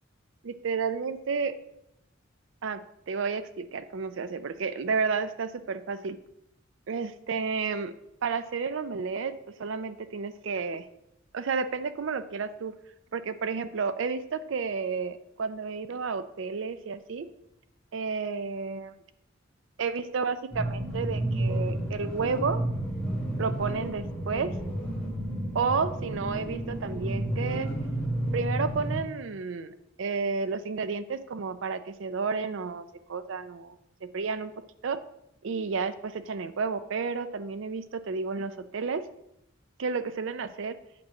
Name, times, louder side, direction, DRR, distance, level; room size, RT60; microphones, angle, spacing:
voice 1, 0.4-1.5 2.6-2.8 3.1-6.2 6.9-7.9 8.2-9.3 9.6-10.9 11.3-12.7 13.1-17.3 17.9-18.9 19.8-22.6 23.4-24.5 25.5-27.7 28.3-33.8 34.1-34.5 34.8-35.0 35.4-39.0 39.8-40.8, right 5 dB, 70° right, 12 dB, 0.5 m, -31 dB
sound 1, 20.5-29.0, right 1 dB, 5° left, 1.8 m, -31 dB
8.6 x 3.0 x 6.2 m, 0.82 s
head